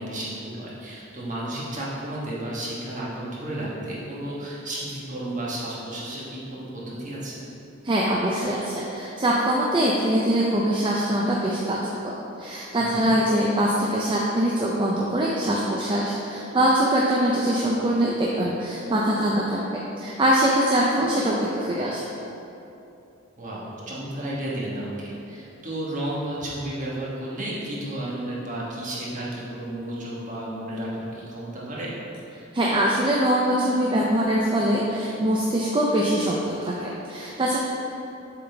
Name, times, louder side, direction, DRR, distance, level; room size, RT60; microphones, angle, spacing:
voice 1, 0.0-7.4 12.8-13.1 23.4-31.9, right 1 dB, 40° right, -6 dB, 1.3 m, -32 dB
voice 2, 7.8-22.0 32.5-37.6, right 1 dB, 25° right, -4 dB, 0.4 m, -23 dB
7.3 x 4.0 x 3.3 m, 2.8 s
head